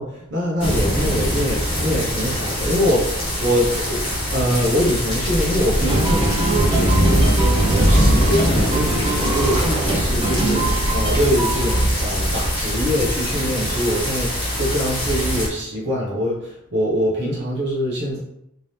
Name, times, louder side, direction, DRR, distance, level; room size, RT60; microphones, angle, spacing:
voice 1, 0.0-4.0 4.3-18.2, equal, 55° right, -6 dB, 0.9 m, -24 dB
sound 1, 0.6-15.5, equal, 25° left, 1.2 m, -21 dB
sound 2, 5.8-11.8, right 2 dB, 25° right, 0.8 m, -23 dB
3.5 x 2.8 x 3.2 m, 0.81 s
head